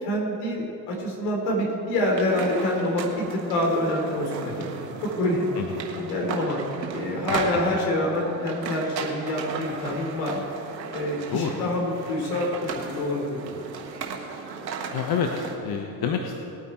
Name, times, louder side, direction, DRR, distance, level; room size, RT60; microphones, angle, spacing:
voice 1, 0.0-5.5 6.0-6.6 6.9-10.4 10.9-13.4, left 1 dB, 70° left, -1 dB, 3.6 m, -26 dB
sound 1, 2.0-15.6, right 5 dB, 90° right, 1.4 m, -35 dB
voice 2, 7.3-7.6 11.3-11.7 14.9-16.4, left 6 dB, 45° left, 3 dB, 1.2 m, -28 dB
19.5 x 9.1 x 4.5 m, 2.8 s
hypercardioid pair, 65°, 49 cm